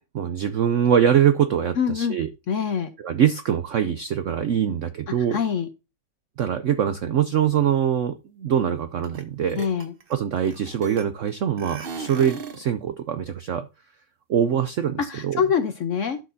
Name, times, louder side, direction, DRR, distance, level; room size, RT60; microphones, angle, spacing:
voice 1, 0.1-2.3 3.0-5.4 6.4-9.6 10.1-13.7 14.3-15.4, right 9 dB, 70° right, 0.7 m, -23 dB
voice 2, 1.8-2.2 2.5-2.9 5.3-5.7 9.6-9.9 15.0-16.2, left 7 dB, 60° left, 0.9 m, -24 dB
sound 1, 9.0-9.2 9.5-11.3 11.6-12.7, right 5 dB, 40° right, 0.8 m, -37 dB
12.0 x 6.4 x 2.6 m
omnidirectional pair, 1.9 m